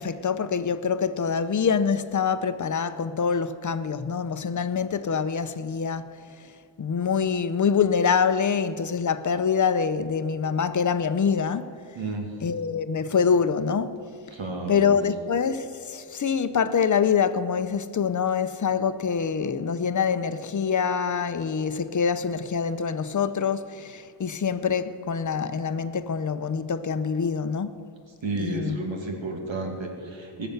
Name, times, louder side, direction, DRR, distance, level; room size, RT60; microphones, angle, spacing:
voice 1, 0.0-6.1 6.8-11.7 12.4-14.0 14.7-27.8 28.4-28.8, left 6 dB, 40° left, 0.7 m, -25 dB
voice 2, 11.9-12.3 14.3-15.0 28.2-30.5, right 2 dB, 85° right, 2.4 m, -32 dB
19.5 x 7.0 x 8.0 m
wide cardioid pair, 130°, 45 cm